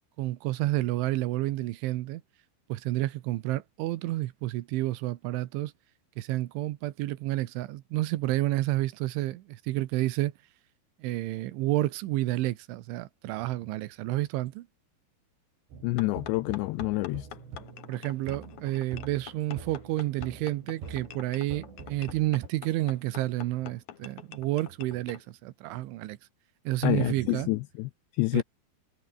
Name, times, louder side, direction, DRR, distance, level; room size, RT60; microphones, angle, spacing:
voice 1, 0.2-2.2 2.7-5.7 6.2-10.3 11.0-14.7 17.9-26.2 26.7-27.5 28.3-28.4, right 17 dB, 80° right, 3.4 m, -30 dB
sound 1, 15.7-22.5, right 5 dB, 60° right, 8.7 m, -45 dB
voice 2, 15.8-17.3 26.8-28.4, left 21 dB, 85° left, 2.5 m, -28 dB
sound 2, 16.0-25.2, left 11 dB, 65° left, 1.8 m, -46 dB
omnidirectional pair, 5.6 m